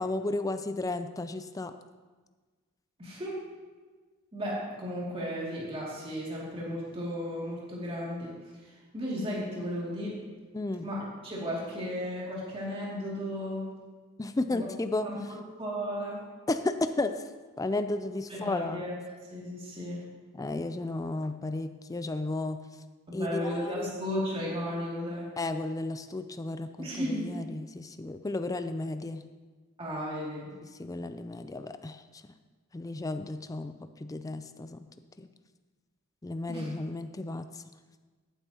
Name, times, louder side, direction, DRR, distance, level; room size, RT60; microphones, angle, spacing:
voice 1, 0.0-1.7 10.5-10.9 14.2-15.1 16.5-17.2 17.6-18.9 20.3-22.6 23.1-23.9 25.4-29.2 30.8-32.2 32.7-34.9 35.2-35.3 36.2-37.6, left 2 dB, 15° left, 9 dB, 0.4 m, -33 dB
voice 2, 3.0-3.4 4.3-8.3 8.6-10.2 10.8-13.8 14.5-14.7 15.0-16.2 18.3-18.9 19.3-20.0 23.1-25.3 26.8-27.2 29.8-30.5 36.5-36.7, equal, 25° right, -5 dB, 2.5 m, -35 dB
14.5 x 9.0 x 2.9 m, 1.4 s
head